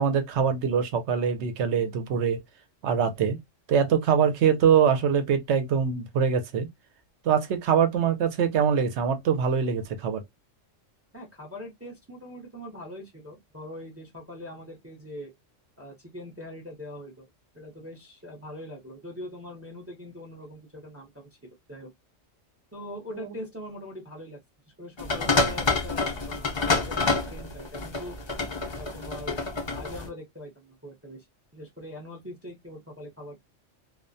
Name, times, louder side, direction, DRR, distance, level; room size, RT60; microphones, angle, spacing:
voice 1, 0.0-2.4 2.8-3.4 3.7-6.7 7.2-10.2 23.1-23.3, right 7 dB, 65° right, 0.9 m, -23 dB
voice 2, 11.1-15.3 15.8-17.3 17.5-21.9 22.7-24.4 24.8-28.1 28.7-31.3 31.5-33.4, left 1 dB, 15° right, 0.5 m, -42 dB
sound 1, 25.0-30.1, left 3 dB, 45° left, 0.3 m, -27 dB
2.3 x 2.1 x 2.5 m
omnidirectional pair, 1.3 m